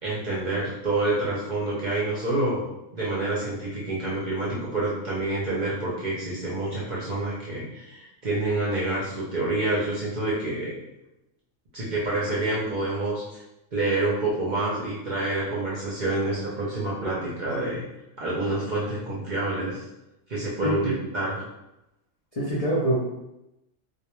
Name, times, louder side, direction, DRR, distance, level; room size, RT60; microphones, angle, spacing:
voice 1, 0.0-10.7 11.7-13.4 13.7-17.8 18.2-19.9 20.3-21.4, right 2 dB, 50° right, -6 dB, 0.6 m, -27 dB
voice 2, 20.6-21.0 22.4-23.0, right 1 dB, 65° left, -7 dB, 0.3 m, -25 dB
2.3 x 2.2 x 3.0 m, 0.91 s
omnidirectional pair, 1.4 m